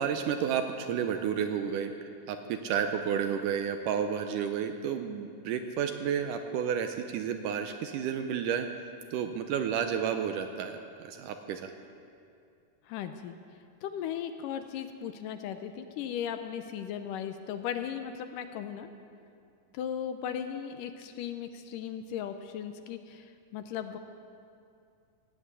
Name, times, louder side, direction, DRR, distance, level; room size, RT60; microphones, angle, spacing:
voice 1, 0.0-8.7 9.1-11.7, right 8 dB, 75° right, 7 dB, 2.1 m, -31 dB
voice 2, 12.9-13.4 13.8-18.9 19.7-24.0, left 9 dB, 75° left, 8 dB, 2.1 m, -37 dB
16.5 x 10.0 x 8.2 m, 2.5 s
omnidirectional pair, 4.1 m